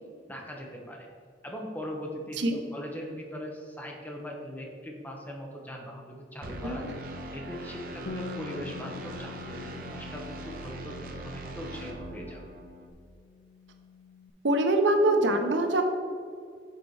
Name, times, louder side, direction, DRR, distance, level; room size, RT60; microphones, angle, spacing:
voice 1, 0.3-1.1 1.4-6.9 7.3-9.6 9.9-12.4, equal, 10° left, 0 dB, 0.8 m, -40 dB
sound 1, 6.4-12.9, right 2 dB, 50° right, 0.7 m, -41 dB
voice 2, 6.6-7.0 14.4-15.8, right 1 dB, 85° right, 5 dB, 0.8 m, -24 dB
Bass guitar, 8.1-12.8 13.0-14.3, left 6 dB, 70° left, 0.4 m, -46 dB
6.6 x 4.2 x 4.7 m, 2.2 s
head